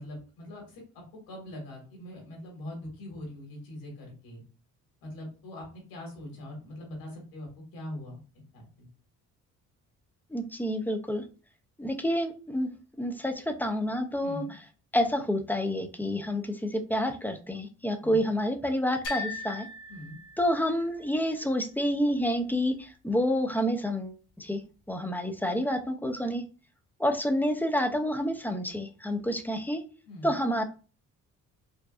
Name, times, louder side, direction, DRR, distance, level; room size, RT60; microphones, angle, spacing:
voice 1, 0.0-4.4 5.0-8.2 8.5-8.9 14.2-14.5 18.0-18.3 19.9-20.2 30.1-30.4, left 1 dB, 85° left, 0 dB, 2.0 m, -42 dB
voice 2, 10.3-11.2 11.8-12.7 13.0-14.4 14.9-19.7 20.4-24.6 24.9-26.4 27.0-29.8 30.2-30.6, equal, 5° left, 6 dB, 0.5 m, -28 dB
sound 1, 19.0-21.0, left 3 dB, 65° left, 1.6 m, -39 dB
4.6 x 2.6 x 2.4 m, 0.36 s
cardioid pair, 90°, 34 cm